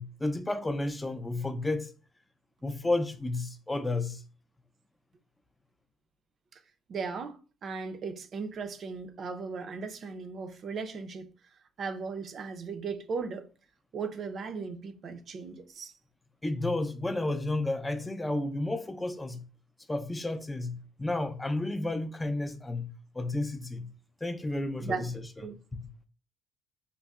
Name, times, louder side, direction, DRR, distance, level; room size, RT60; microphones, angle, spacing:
voice 1, 0.0-1.9 2.6-4.2 16.4-19.4 19.9-23.9 24.2-25.8, left 2 dB, 15° left, 0.4 m, -32 dB
voice 2, 6.9-11.3 11.8-13.5 13.9-15.9 24.8-25.1 25.4-25.5, right 5 dB, 55° right, 0.5 m, -37 dB
5.2 x 2.0 x 2.3 m
supercardioid pair, 75°, 0 cm